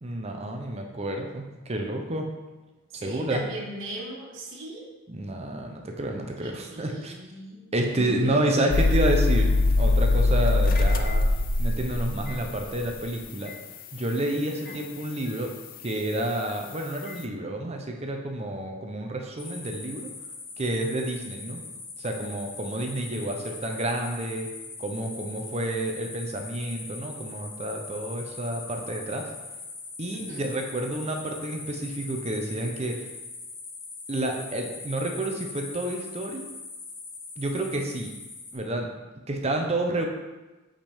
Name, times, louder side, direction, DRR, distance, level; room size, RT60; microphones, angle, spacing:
voice 1, 0.0-2.3 3.0-3.4 5.1-7.1 7.7-11.2 11.6-13.5 13.9-15.5 15.8-20.1 20.6-21.6 22.0-24.5 24.8-29.3 30.0-33.0 34.1-36.4 37.4-38.1 38.5-38.9 39.3-40.1, right 1 dB, 30° right, 2 dB, 0.7 m, -29 dB
voice 2, 2.9-4.8 6.4-7.6 7.9-8.9 14.6-14.8 30.1-30.5, right 2 dB, 60° right, -3 dB, 1.5 m, -38 dB
sound 1, 8.7-12.9 13.5-13.6 15.9-16.0, left 2 dB, 40° left, 0.5 m, -22 dB
sound 2, 19.4-38.6, left 4 dB, 60° left, 2.2 m, -41 dB
7.8 x 5.1 x 3.6 m, 1.1 s
head